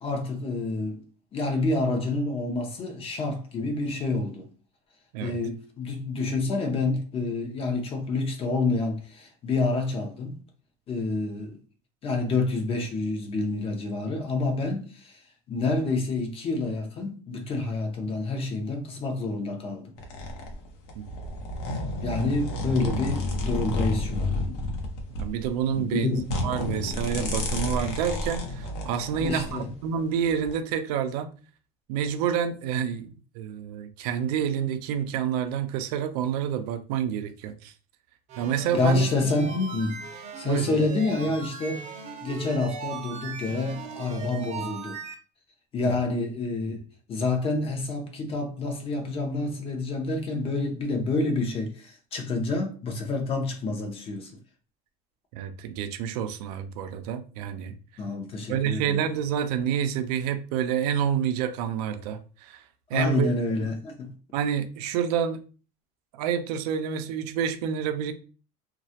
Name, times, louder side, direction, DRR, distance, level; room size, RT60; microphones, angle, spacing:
voice 1, 0.0-1.0 1.3-4.5 5.2-10.3 10.9-11.6 12.0-15.2 15.5-19.9 22.0-24.6 25.7-26.2 29.2-29.7 38.7-40.0 40.4-41.8 42.2-45.0 45.7-46.8 47.1-54.3 58.0-59.0 62.9-64.1, left 3 dB, 30° left, 0.6 m, -28 dB
sound 1, 20.0-29.6 30.3-30.5, left 2 dB, 90° left, 0.7 m, -31 dB
voice 2, 25.2-31.3 31.9-37.7 38.4-39.1 40.4-40.8 45.8-45.9 55.3-57.7 58.5-62.6 62.9-63.3 64.3-65.4 66.1-68.1, right 8 dB, 85° right, 0.4 m, -28 dB
sound 2, 38.3-45.1, right 5 dB, 35° right, 0.6 m, -38 dB
2.3 x 2.0 x 2.8 m
supercardioid pair, 130°, 19 cm